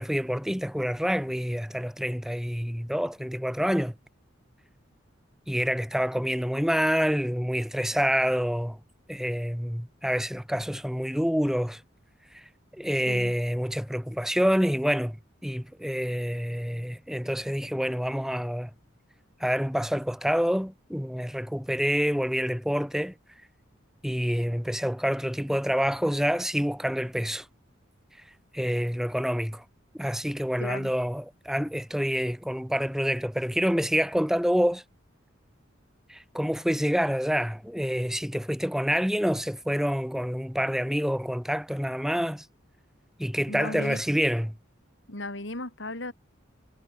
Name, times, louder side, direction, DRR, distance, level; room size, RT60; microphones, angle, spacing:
voice 1, 0.0-3.9 5.5-8.8 9.1-11.8 12.8-15.2 15.4-18.7 19.4-23.1 24.0-27.4 28.5-29.6 30.0-34.8 36.1-42.4 43.2-44.5, equal, ahead, 4.0 m, -27 dB
voice 2, 30.6-30.9 43.5-44.0 45.1-46.1, left 2 dB, 65° left, 4.6 m, -35 dB
head